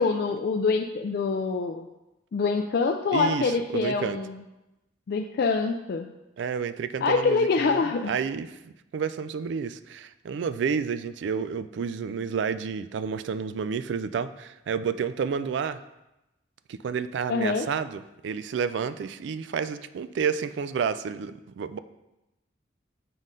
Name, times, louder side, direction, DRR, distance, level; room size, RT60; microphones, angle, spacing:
voice 1, 0.0-1.8 2.3-4.4 5.1-6.1 7.0-8.1 17.3-17.7, left 4 dB, 55° left, 4 dB, 0.3 m, -25 dB
voice 2, 3.1-4.2 6.4-15.8 16.7-21.8, right 6 dB, 65° right, 13 dB, 0.3 m, -30 dB
7.3 x 3.8 x 3.7 m, 0.95 s
head